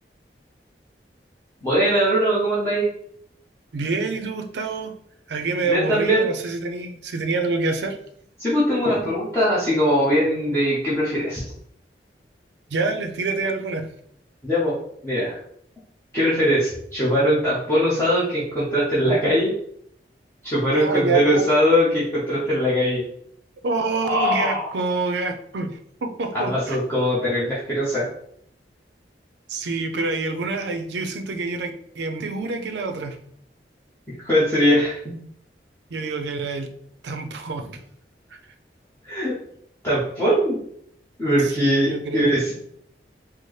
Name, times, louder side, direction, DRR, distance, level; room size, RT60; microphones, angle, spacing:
voice 1, 1.6-2.9 5.7-6.3 8.4-11.4 14.4-14.7 15.0-15.4 16.1-19.5 20.4-23.0 24.0-24.7 26.3-28.0 34.2-35.0 39.0-39.3 39.8-40.6 41.2-42.5, equal, 15° left, -11 dB, 0.8 m, -21 dB
voice 2, 3.7-4.9 5.3-8.0 12.7-13.9 20.7-21.4 23.6-26.8 29.5-33.2 35.9-36.7 37.0-37.8 41.4-42.3, right 3 dB, 80° right, 6 dB, 0.5 m, -27 dB
4.1 x 2.0 x 3.1 m, 0.68 s
head